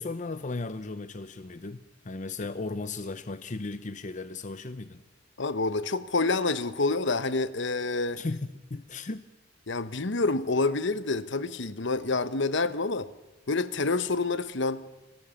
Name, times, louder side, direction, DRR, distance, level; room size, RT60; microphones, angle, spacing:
voice 1, 0.0-5.0 8.2-9.3, left 3 dB, 40° left, 0.8 m, -36 dB
voice 2, 5.4-8.2 9.7-13.1 13.5-15.0, left 3 dB, 65° left, 1.1 m, -28 dB
25.5 x 18.0 x 7.1 m
head